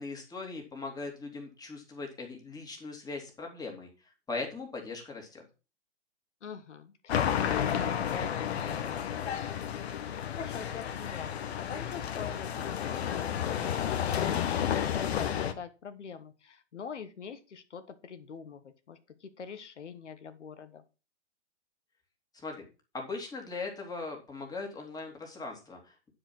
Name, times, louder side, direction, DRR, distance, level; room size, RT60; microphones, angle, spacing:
voice 1, 0.0-5.4 22.3-22.6 22.9-26.1, left 3 dB, 10° left, 1 dB, 2.8 m, -40 dB
voice 2, 6.4-20.8, left 6 dB, 80° left, 10 dB, 1.3 m, -44 dB
sound 1, 7.1-15.5, left 9 dB, 60° left, 1.4 m, -31 dB
10.0 x 5.0 x 6.1 m, 0.32 s
hypercardioid pair, 125°, 35 cm